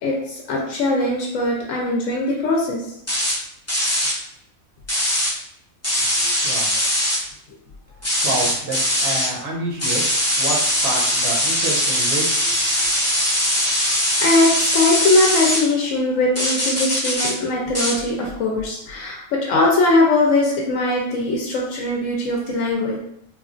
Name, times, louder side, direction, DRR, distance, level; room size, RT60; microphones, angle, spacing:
voice 1, 0.0-2.8 14.2-23.0, left 2 dB, 70° left, -2 dB, 0.9 m, -20 dB
sound 1, 3.1-3.4 3.7-4.1 4.9-5.3 5.8-7.2 8.0-9.3 9.8-15.6 16.4-17.3 17.7-17.9, equal, 20° left, 0.5 m, -21 dB
voice 2, 6.2-6.7 8.2-12.9, right 2 dB, 55° right, -3 dB, 0.9 m, -29 dB
3.0 x 2.3 x 2.4 m, 0.73 s
omnidirectional pair, 1.5 m